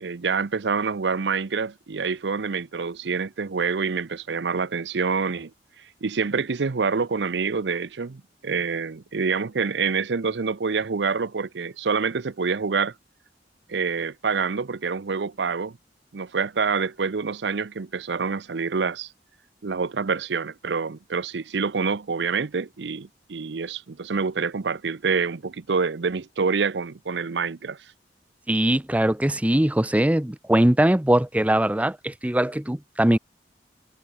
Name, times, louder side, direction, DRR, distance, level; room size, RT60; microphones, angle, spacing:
voice 1, 0.0-5.5 6.0-12.9 13.7-15.8 16.1-19.1 19.6-27.8, right 5 dB, 75° right, 0.7 m, -26 dB
voice 2, 28.5-33.2, right 1 dB, 10° right, 0.6 m, -21 dB
head